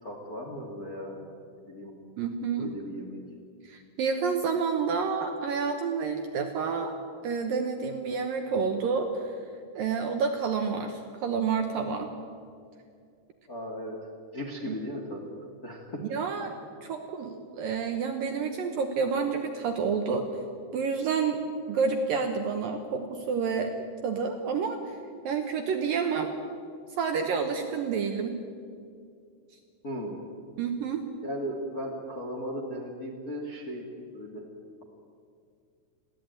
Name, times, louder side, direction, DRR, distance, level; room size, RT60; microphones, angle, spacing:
voice 1, 0.0-1.2 1.6-1.9 2.6-3.2 13.5-14.0 14.3-15.3 15.6-16.0 29.8-30.2 31.2-33.9 34.1-34.4, equal, 35° left, 0 dB, 1.5 m, -36 dB
voice 2, 2.2-2.7 3.6-6.9 7.2-9.3 9.7-12.1 14.7-14.8 16.0-16.5 16.8-20.3 20.7-21.4 21.7-25.0 25.2-26.3 26.9-28.3 30.6-31.0, right 5 dB, 70° right, 5 dB, 2.3 m, -29 dB
22.5 x 15.5 x 9.1 m, 2.3 s
omnidirectional pair, 5.2 m